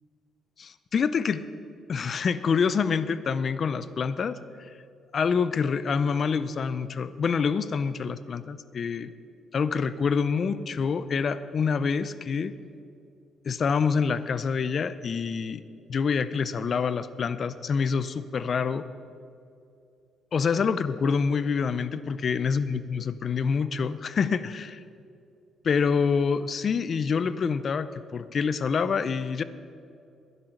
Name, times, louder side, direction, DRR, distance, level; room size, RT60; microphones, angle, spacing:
voice 1, 0.6-1.4 1.9-4.7 5.1-9.1 9.5-12.5 13.5-15.6 15.9-18.9 20.3-24.8 25.6-29.4, left 5 dB, 50° left, 14 dB, 0.6 m, -26 dB
11.0 x 10.5 x 6.6 m, 2.5 s
cardioid pair, 90°, 0 cm